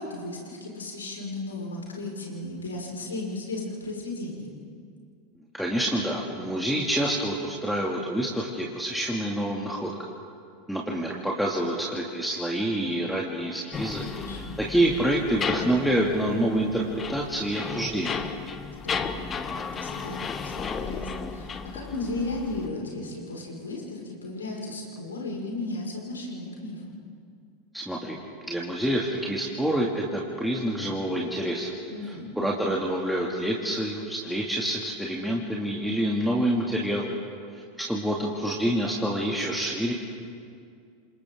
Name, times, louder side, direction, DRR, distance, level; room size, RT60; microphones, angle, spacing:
voice 1, 0.0-4.5 14.1-14.6 18.7-19.3 19.7-27.0 31.9-32.3, left 2 dB, 80° left, -2 dB, 5.4 m, -35 dB
voice 2, 5.5-9.9 10.7-14.1 14.6-18.2 27.7-28.2 28.5-31.7 32.4-37.2 37.8-39.9, right 1 dB, ahead, -2 dB, 2.4 m, -27 dB
sound 1, 13.7-22.7, left 5 dB, 25° left, 1.3 m, -34 dB
29.5 x 27.0 x 3.8 m, 2.3 s
figure-of-eight pair, 85°, 0 cm